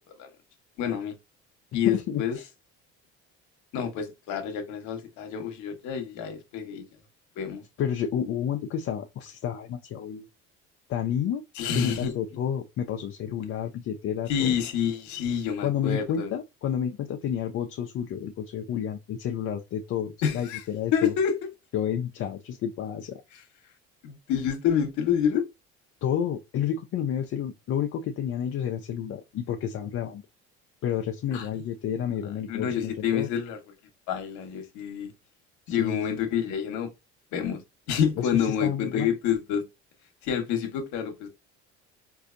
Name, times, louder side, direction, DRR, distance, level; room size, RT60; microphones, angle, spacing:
voice 1, 0.8-1.1 1.7-2.4 3.7-6.8 7.4-7.6 11.6-12.1 14.3-16.3 20.2-20.6 20.9-21.3 23.3-23.4 24.0-25.4 31.3-31.5 32.5-33.6 34.1-35.1 35.7-36.9 37.3-37.6 37.9-39.6 40.2-41.3, left 8 dB, 75° left, 1.1 m, -28 dB
voice 2, 1.9-2.5 7.8-10.3 10.9-11.4 11.7-14.6 15.6-21.1 21.7-23.2 26.0-30.2 30.8-33.3 35.7-36.0 38.2-39.1, left 9 dB, 50° left, 0.6 m, -30 dB
4.0 x 2.6 x 2.5 m
supercardioid pair, 100°, 29 cm